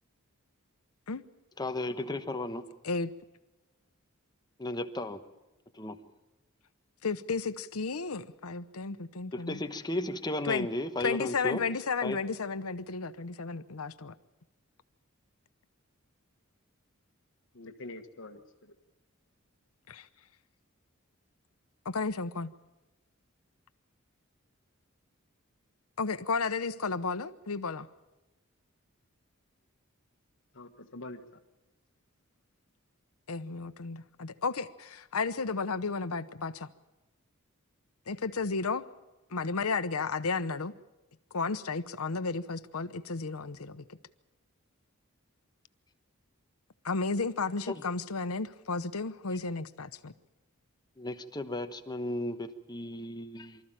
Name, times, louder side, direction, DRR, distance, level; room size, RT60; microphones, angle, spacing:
voice 1, 1.6-2.6 4.6-5.2 5.8-6.0 9.3-11.6 12.0-12.2 47.7-47.8 51.0-53.6, left 2 dB, 20° left, 8 dB, 1.1 m, -34 dB
voice 2, 7.0-9.6 10.4-10.7 11.0-14.1 19.9-20.1 21.8-22.5 26.0-27.9 33.3-36.7 38.1-38.8 39.3-40.7 41.3-43.8 46.8-50.1, left 4 dB, 90° left, 13 dB, 0.9 m, -33 dB
voice 3, 17.5-18.7 30.5-31.4, left 2 dB, 65° left, 6 dB, 1.5 m, -45 dB
24.5 x 14.0 x 9.0 m, 1.1 s
head